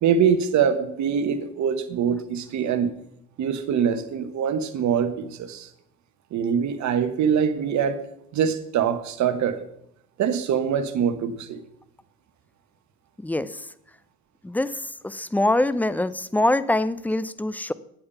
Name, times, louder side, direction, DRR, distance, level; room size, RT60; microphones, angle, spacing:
voice 1, 0.0-2.9 3.4-5.7 6.3-8.0 8.3-9.6 10.2-11.6, right 7 dB, 50° right, 10 dB, 1.3 m, -23 dB
voice 2, 15.0-17.7, left 1 dB, 5° left, 16 dB, 0.4 m, -23 dB
8.9 x 8.5 x 5.6 m, 0.76 s
hypercardioid pair, 65°, 38 cm